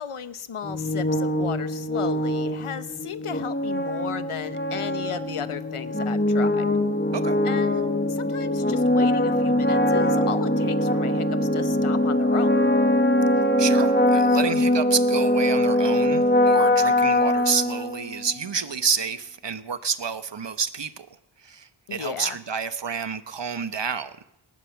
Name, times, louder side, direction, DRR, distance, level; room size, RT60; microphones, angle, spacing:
voice 1, 0.0-6.7 7.4-12.7 21.9-22.4, left 7 dB, 85° left, 14 dB, 1.0 m, -34 dB
sound 1, 0.6-18.3, left 1 dB, 20° left, 1.8 m, -22 dB
voice 2, 13.6-21.1 21.4-24.2, right 6 dB, 60° right, 12 dB, 1.1 m, -29 dB
19.0 x 9.7 x 7.1 m, 0.82 s
wide cardioid pair, 55°, 49 cm